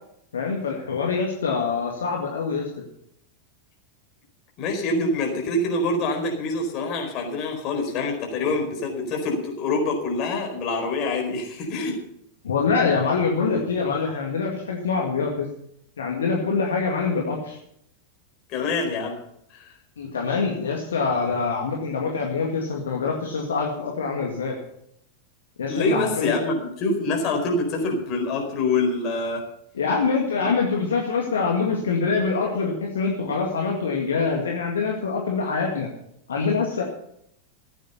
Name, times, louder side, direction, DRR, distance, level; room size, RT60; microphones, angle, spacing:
voice 1, 0.3-2.7 12.4-15.5 16.0-17.6 20.0-24.6 25.6-26.4 29.7-35.9 36.3-36.8, left 4 dB, 65° left, 0 dB, 2.0 m, -25 dB
voice 2, 4.6-12.0 18.5-19.2 19.5-19.7 25.7-29.4 30.4-30.5, left 2 dB, 40° left, 2 dB, 4.4 m, -25 dB
15.0 x 9.2 x 7.0 m, 0.74 s
figure-of-eight pair, 90°, 0 cm